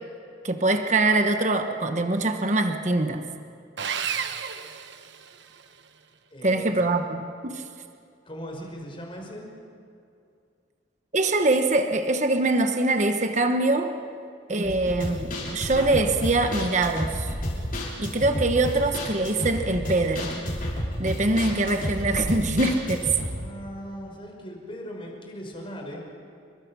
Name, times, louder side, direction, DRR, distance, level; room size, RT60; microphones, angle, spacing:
voice 1, 0.4-3.2 6.4-7.6 11.1-13.9 14.5-17.3 18.0-20.4 21.0-23.1, right 2 dB, 40° right, 6 dB, 1.2 m, -23 dB
Sawing, 3.8-5.7, right 7 dB, 65° right, 1.2 m, -32 dB
voice 2, 6.3-6.9 8.2-9.5 23.4-26.0, equal, 25° left, 0 dB, 5.4 m, -39 dB
sound 1, 14.6-23.3, left 1 dB, 45° left, 6.5 m, -31 dB
30.0 x 24.0 x 6.3 m, 2.4 s
head